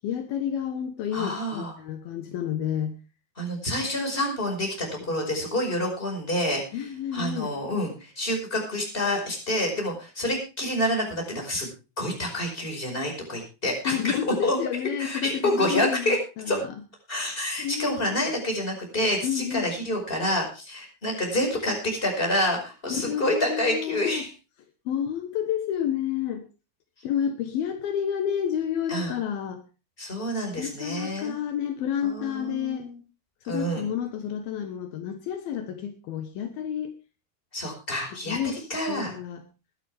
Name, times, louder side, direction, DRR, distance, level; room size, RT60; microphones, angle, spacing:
voice 1, 0.0-3.0 5.1-5.2 6.7-7.5 13.9-16.8 17.6-18.4 19.2-19.7 22.9-24.3 24.9-26.4 27.0-29.6 30.5-32.9 33.5-36.9 38.1-39.4, left 9 dB, 75° left, 7 dB, 3.0 m, -30 dB
voice 2, 1.1-1.7 3.4-6.6 7.1-11.7 12.0-14.2 14.4-14.6 15.0-16.2 16.4-16.6 17.1-24.3 28.9-29.1 30.0-31.3 32.0-33.0 33.5-33.9 37.5-39.1, left 1 dB, 15° left, 2 dB, 5.1 m, -28 dB
21.0 x 10.5 x 3.5 m, 0.32 s
omnidirectional pair, 4.5 m